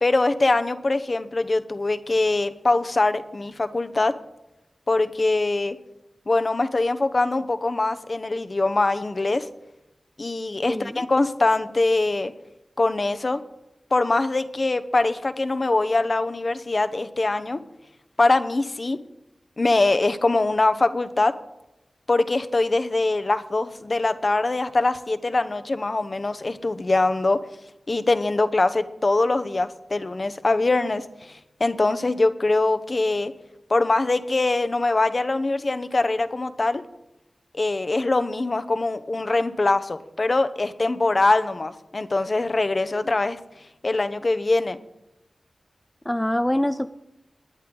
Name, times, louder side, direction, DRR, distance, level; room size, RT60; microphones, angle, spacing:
voice 1, 0.0-4.2 4.9-5.8 6.3-9.5 10.2-12.3 12.8-13.4 13.9-17.6 18.2-19.0 19.6-21.4 22.1-27.4 27.9-33.3 33.7-36.8 37.5-43.4 43.8-44.8, left 2 dB, 45° left, 10 dB, 0.8 m, -23 dB
voice 2, 10.7-11.0 46.1-46.9, left 1 dB, 10° left, 10 dB, 0.4 m, -24 dB
20.0 x 10.0 x 3.9 m, 0.90 s
wide cardioid pair, 75°, 0 cm